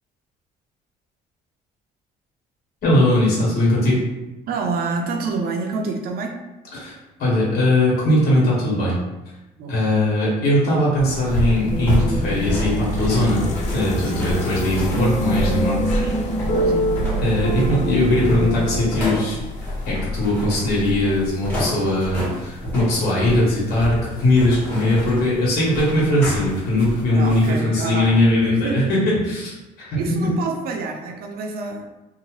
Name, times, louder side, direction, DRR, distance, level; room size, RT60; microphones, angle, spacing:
voice 1, 2.8-4.0 6.7-9.0 9.7-15.8 17.2-19.4 19.9-30.3, left 1 dB, 65° left, -6 dB, 1.3 m, -20 dB
voice 2, 4.5-6.4 9.6-9.8 14.0-14.3 16.0-16.3 16.6-16.9 27.1-28.2 28.5-28.9 30.0-31.9, right 4 dB, 65° right, 2 dB, 0.5 m, -27 dB
sound 1, 11.0-27.5, equal, 10° left, 1.2 m, -29 dB
sound 2, 11.1-21.3, right 1 dB, 45° left, 0.4 m, -30 dB
sound 3, 11.7-18.9, equal, 90° left, 0.7 m, -26 dB
2.8 x 2.2 x 3.0 m, 1.0 s
cardioid pair, 110°, 17 cm